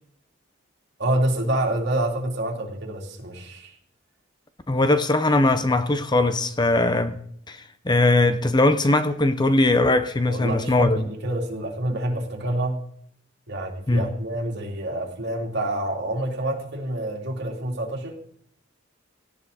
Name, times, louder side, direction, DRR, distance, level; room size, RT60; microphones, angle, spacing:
voice 1, 1.0-3.7 10.2-12.8 13.5-18.2, right 1 dB, 60° right, 3.2 m, -27 dB
voice 2, 4.7-7.1 7.5-7.6 7.8-11.0 13.9-14.1, left 2 dB, 20° left, 0.8 m, -20 dB
17.5 x 17.0 x 4.2 m
head